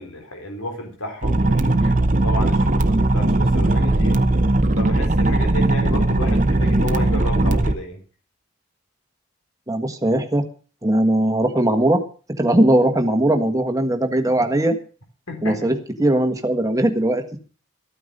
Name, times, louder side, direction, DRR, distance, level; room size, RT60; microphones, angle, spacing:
voice 1, 0.0-4.2 4.8-8.0 15.3-15.7, left 1 dB, 75° left, 3 dB, 3.9 m, -32 dB
sound 1, 1.2-7.7, right 2 dB, 35° right, 0.9 m, -18 dB
voice 2, 9.7-10.4 10.8-12.0 12.3-14.8 15.4-17.4, right 1 dB, 15° right, 5 dB, 1.5 m, -19 dB
14.0 x 9.2 x 6.7 m, 0.39 s
head